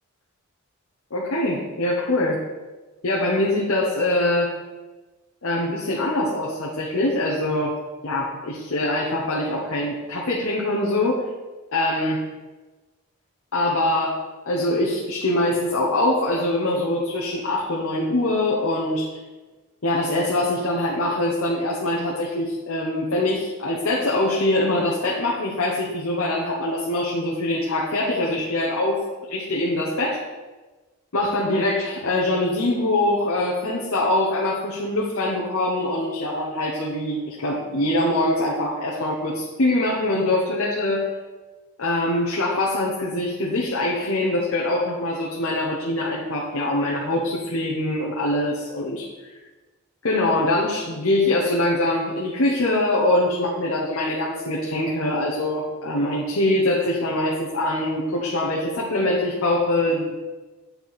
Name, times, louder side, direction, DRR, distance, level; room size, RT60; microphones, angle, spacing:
voice 1, 1.1-2.4 3.0-4.5 5.4-7.8 8.0-11.2 11.7-12.2 13.5-19.2 19.8-29.0 29.3-30.3 31.1-41.0 41.8-49.1 50.0-60.1, left 1 dB, 65° left, -4 dB, 0.9 m, -23 dB
8.1 x 4.5 x 4.1 m, 1.2 s
head